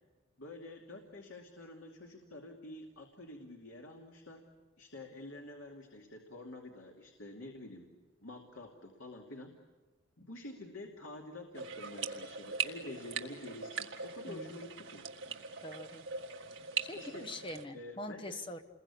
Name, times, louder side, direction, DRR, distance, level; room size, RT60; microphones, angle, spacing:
voice 1, 0.4-4.4 4.8-8.0 8.2-9.5 10.2-15.1 16.9-17.3 17.7-18.4, left 2 dB, 75° left, 2 dB, 2.6 m, -48 dB
sound 1, 11.5-17.6, right 6 dB, 70° right, 1.9 m, -41 dB
voice 2, 15.6-16.0 16.8-18.6, left 1 dB, 25° left, 7 dB, 1.2 m, -44 dB
29.0 x 21.5 x 8.5 m, 1.2 s
head